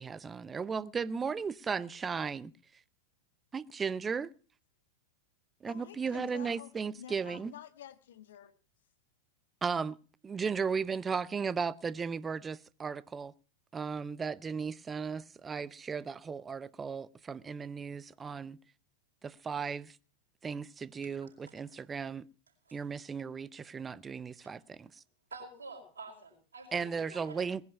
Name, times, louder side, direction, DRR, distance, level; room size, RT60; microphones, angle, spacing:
voice 1, 0.0-2.5 3.5-4.3 5.6-7.5 9.6-10.0 10.2-13.3 13.7-18.6 19.2-20.0 20.4-22.2 22.7-25.0 26.7-27.6, right 5 dB, 15° right, 0.7 m, -36 dB
voice 2, 5.7-8.5, left 10 dB, 60° left, 1.4 m, -50 dB
voice 3, 21.2-21.5 22.6-22.8 24.4-24.5 25.3-27.4, right 3 dB, 70° right, 5.2 m, -49 dB
19.5 x 10.5 x 5.7 m
figure-of-eight pair, 90°, 0 cm